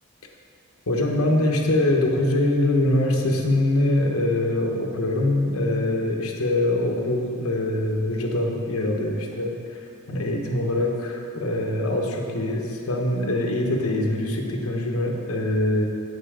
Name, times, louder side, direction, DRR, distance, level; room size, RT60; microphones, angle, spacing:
voice 1, 0.9-9.6 10.1-15.9, left 1 dB, 85° left, 1 dB, 1.0 m, -23 dB
7.9 x 5.6 x 4.9 m, 2.6 s
head